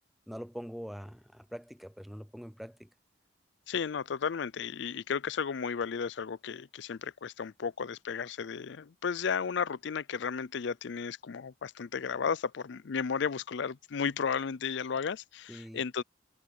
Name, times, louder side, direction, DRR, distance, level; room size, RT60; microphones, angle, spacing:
voice 1, 0.3-2.9 15.5-15.8, equal, ahead, 0.5 m, -43 dB
voice 2, 3.7-16.0, left 6 dB, 60° left, 0.5 m, -34 dB
head